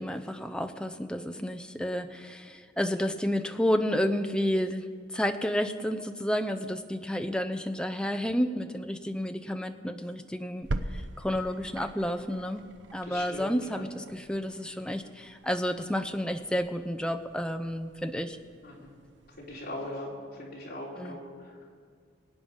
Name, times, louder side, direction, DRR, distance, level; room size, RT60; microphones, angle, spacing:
voice 1, 0.0-4.9 5.1-12.6 12.9-18.4 21.0-21.2, equal, 5° left, 7 dB, 0.6 m, -31 dB
sound 1, 10.6-20.0, right 2 dB, 70° right, 0.7 m, -43 dB
voice 2, 13.1-13.8 18.6-18.9 19.4-21.3, left 1 dB, 50° left, -4 dB, 3.5 m, -40 dB
23.0 x 8.8 x 5.5 m, 2.1 s
head